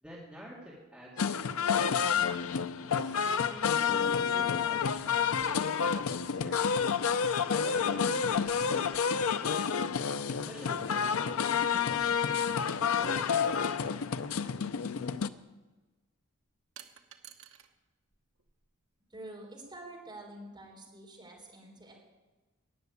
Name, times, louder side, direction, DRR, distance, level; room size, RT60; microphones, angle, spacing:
voice 1, 0.0-2.5 3.2-6.8 7.6-9.7 10.3-12.2 12.8-14.4, equal, 5° right, -7 dB, 2.3 m, -49 dB
sound 1, 1.2-15.3, left 6 dB, 75° left, 0.6 m, -29 dB
sound 2, 16.8-17.7 18.1-18.9, right 9 dB, 70° right, 1.1 m, -53 dB
voice 2, 19.1-22.0, right 1 dB, 20° right, -1 dB, 3.8 m, -47 dB
15.0 x 7.0 x 9.6 m, 1.2 s
head